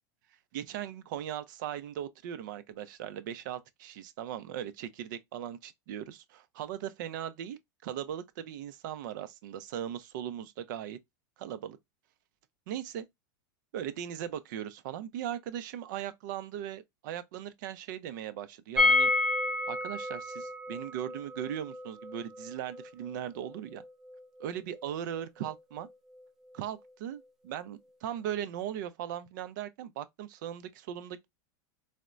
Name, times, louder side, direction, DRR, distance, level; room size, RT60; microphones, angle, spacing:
voice 1, 0.5-11.0 11.4-11.8 12.7-13.1 13.7-19.1 19.7-23.8 24.4-25.9 26.5-31.3, right 10 dB, 65° right, 0.5 m, -38 dB
sound 1, 18.8-24.5 24.8-24.9 25.1-25.2, left 2 dB, 5° right, 0.4 m, -30 dB
4.2 x 2.1 x 2.4 m
supercardioid pair, 140°, 11 cm